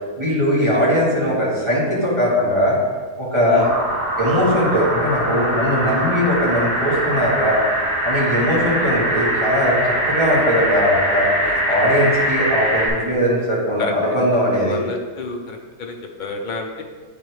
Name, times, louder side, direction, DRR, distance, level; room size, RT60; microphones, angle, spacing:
voice 1, 0.2-2.8 3.2-3.7 4.2-7.6 8.0-11.3 11.7-14.8, equal, 20° right, -8 dB, 1.4 m, -19 dB
sound 1, 3.6-12.9, right 1 dB, 45° right, 2.3 m, -22 dB
voice 2, 14.6-16.8, left 4 dB, 50° left, 2 dB, 0.6 m, -30 dB
8.8 x 3.4 x 4.7 m, 1.5 s
omnidirectional pair, 1.6 m